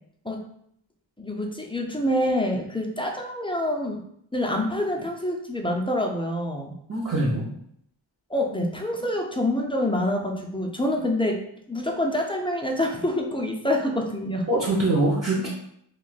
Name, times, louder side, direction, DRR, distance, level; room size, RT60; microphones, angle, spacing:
voice 1, 1.2-4.0 4.3-6.7 8.3-11.4 11.7-14.5, left 1 dB, 10° left, 1 dB, 0.4 m, -26 dB
voice 2, 6.9-7.4 14.5-15.5, right 2 dB, 30° right, -7 dB, 0.7 m, -23 dB
2.5 x 2.2 x 3.9 m, 0.70 s
wide cardioid pair, 40°, 49 cm